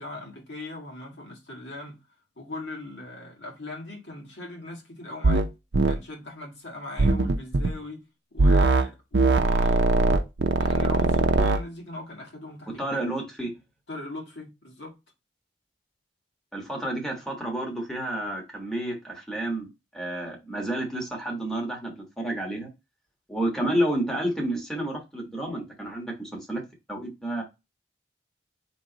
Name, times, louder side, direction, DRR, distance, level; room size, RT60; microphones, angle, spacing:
voice 1, 0.0-2.0 2.4-5.5 5.9-8.0 8.3-10.1 10.6-13.0 13.9-14.9, left 2 dB, 80° left, 1.6 m, -39 dB
sound 1, 5.2-5.5 5.7-6.0 7.0-7.7 8.4-8.9 9.1-11.6, right 2 dB, 65° right, 0.6 m, -21 dB
voice 2, 12.8-13.5 16.5-19.7 19.9-22.7 23.3-26.6 26.9-27.4, right 1 dB, 5° left, 1.3 m, -30 dB
4.4 x 3.1 x 3.9 m
head